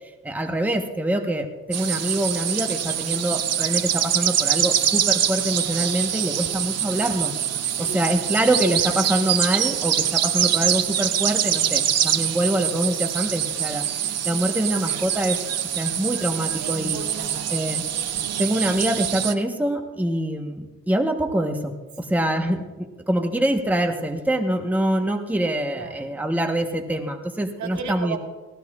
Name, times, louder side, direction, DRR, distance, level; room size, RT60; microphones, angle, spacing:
voice 1, 0.2-7.4 7.8-13.8 14.2-15.4 15.6-17.0 17.5-17.8 18.4-28.2, right 1 dB, 5° right, 4 dB, 1.2 m, -25 dB
sound 1, 1.7-19.3, right 10 dB, 55° right, 0.8 m, -24 dB
voice 2, 7.7-8.5 11.5-11.8 16.6-17.5 17.9-18.3 22.1-22.3 25.7-26.2 27.6-28.2, right 5 dB, 70° right, 2 dB, 2.4 m, -37 dB
19.0 x 15.0 x 2.5 m, 1.2 s
cardioid pair, 90°, 30 cm